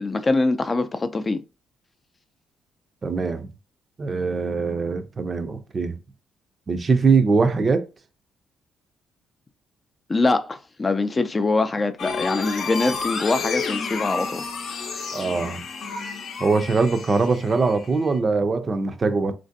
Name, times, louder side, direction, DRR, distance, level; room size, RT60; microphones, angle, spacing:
voice 1, 0.0-1.4 10.1-14.5, left 3 dB, 25° left, 0.3 m, -23 dB
voice 2, 3.0-3.5 4.0-6.0 6.7-7.8 15.1-15.6 16.4-19.3, right 4 dB, 35° right, 0.4 m, -22 dB
sound 1, 12.0-18.2, left 5 dB, 60° left, 0.6 m, -31 dB
3.1 x 2.5 x 2.6 m
cardioid pair, 90°, 0 cm